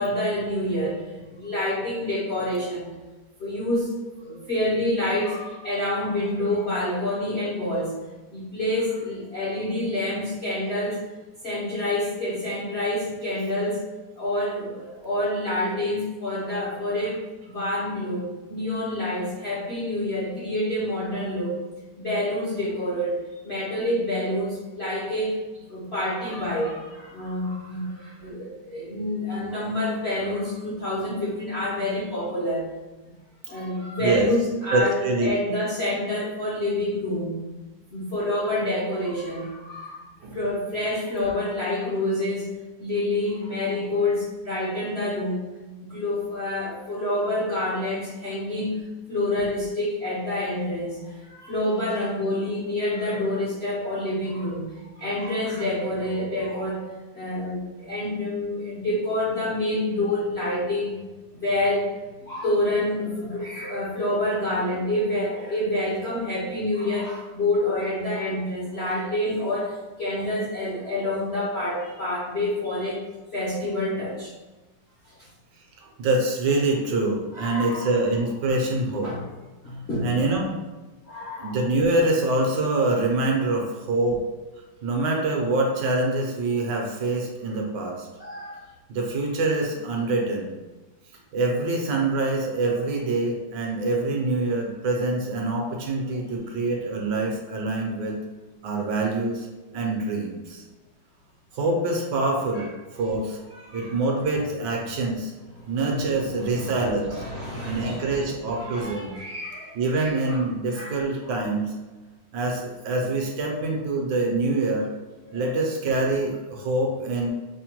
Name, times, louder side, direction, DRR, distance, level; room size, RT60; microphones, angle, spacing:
voice 1, 0.0-2.9 3.4-7.9 8.3-11.0 11.4-13.8 14.2-21.6 22.0-23.2 23.4-25.4 25.7-32.7 33.0-33.1 33.5-37.4 37.9-42.5 42.8-45.4 45.8-48.8 49.1-56.9 57.1-60.9 61.3-61.9 62.2-73.0 73.3-74.3 75.0-75.3 77.3-77.9 79.0-79.2 79.6-80.1 81.0-81.6 88.2-88.7 96.1-96.2 102.5-102.6 103.5-103.9 105.7-110.4 110.7-111.4 115.2-115.4, left 1 dB, 60° left, -8 dB, 0.6 m, -28 dB
voice 2, 34.7-35.6 40.2-40.4 70.2-70.3 75.8-79.1 80.0-80.6 81.4-84.2 84.8-88.1 88.9-90.5 91.3-98.2 98.6-99.5 99.7-100.6 101.5-102.7 102.9-103.4 103.7-105.3 105.7-107.2 107.6-109.1 109.7-111.7 112.3-114.9 115.3-117.3, right 2 dB, 70° right, 1 dB, 1.3 m, -25 dB
5.6 x 2.1 x 2.9 m, 1.2 s
omnidirectional pair, 2.1 m